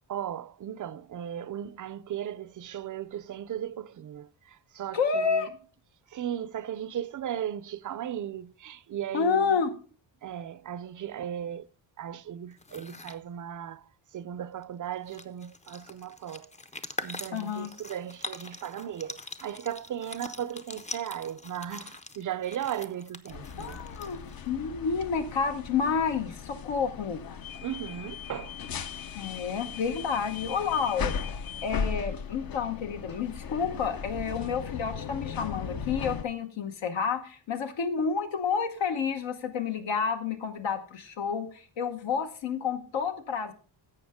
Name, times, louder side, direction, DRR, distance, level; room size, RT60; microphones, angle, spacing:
voice 1, 0.1-5.5 6.1-9.6 10.2-11.7 12.0-16.5 17.0-23.8 27.6-28.9, right 10 dB, 45° right, 0.5 m, -37 dB
voice 2, 4.9-5.5 9.1-9.7 17.3-17.7 23.6-24.2 24.5-27.2 29.2-31.1 31.6-43.5, left 6 dB, 75° left, 1.1 m, -29 dB
sound 1, 12.5-13.2 14.6-14.7 14.9-24.5, left 2 dB, 15° left, 0.5 m, -43 dB
sound 2, 23.3-36.2, left 6 dB, 50° left, 0.7 m, -37 dB
11.5 x 7.6 x 3.5 m
wide cardioid pair, 150°, 45 cm